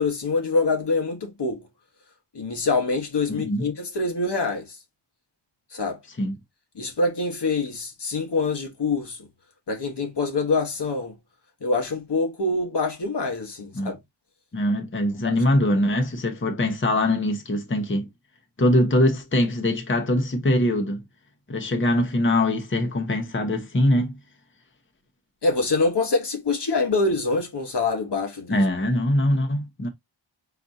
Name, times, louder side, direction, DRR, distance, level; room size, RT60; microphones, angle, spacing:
voice 1, 0.0-1.6 2.3-4.7 5.7-6.0 6.7-9.2 9.7-11.1 11.6-14.0 15.2-15.3 25.4-28.6, left 3 dB, 60° left, 1.3 m, -25 dB
voice 2, 3.3-3.7 6.2-6.4 13.7-13.9 14.5-18.1 18.6-21.0 21.5-24.1 28.5-29.9, left 1 dB, 25° left, 1.0 m, -22 dB
4.2 x 4.0 x 2.6 m
wide cardioid pair, 80°, 47 cm